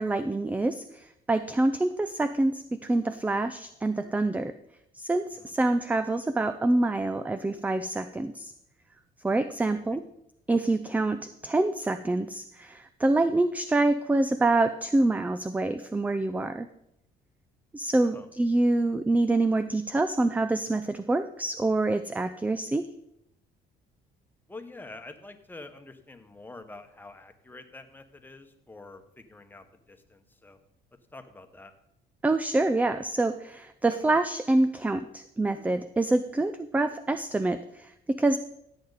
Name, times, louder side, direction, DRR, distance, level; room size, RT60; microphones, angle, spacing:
voice 1, 0.0-4.5 4.9-8.5 9.2-10.0 10.5-16.7 17.7-22.9 32.2-38.4, right 2 dB, 10° right, 11 dB, 0.4 m, -26 dB
voice 2, 24.5-30.6 31.1-31.7, left 2 dB, 10° left, 7 dB, 1.2 m, -47 dB
16.0 x 7.8 x 4.1 m, 0.80 s
cardioid pair, 110°, 17 cm